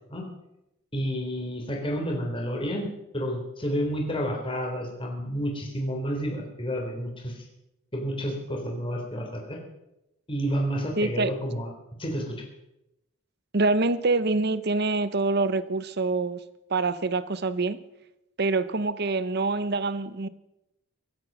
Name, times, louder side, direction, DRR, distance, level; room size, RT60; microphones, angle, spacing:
voice 1, 0.9-7.3 7.9-9.6 10.3-11.7 12.0-12.4, equal, 25° left, 3.6 m, -30 dB
voice 2, 11.0-11.3 13.5-16.4 16.7-17.8 18.4-20.3, right 3 dB, 50° right, 0.9 m, -25 dB
24.5 x 8.6 x 6.2 m
head